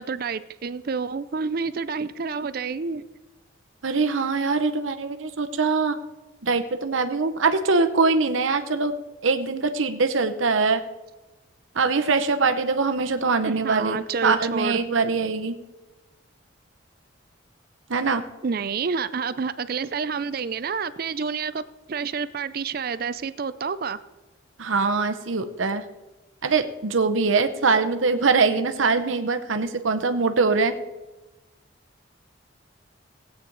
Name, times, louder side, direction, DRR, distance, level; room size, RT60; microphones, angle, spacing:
voice 1, 0.0-3.0 13.5-14.8 18.4-21.6 21.9-24.0, right 5 dB, 50° right, 15 dB, 0.4 m, -28 dB
voice 2, 3.8-6.0 6.4-9.0 9.2-10.8 11.7-14.0 14.2-15.6 17.9-18.2 24.6-25.8 26.4-30.7, right 4 dB, 75° right, 8 dB, 0.8 m, -23 dB
17.0 x 8.6 x 3.9 m, 1.1 s
head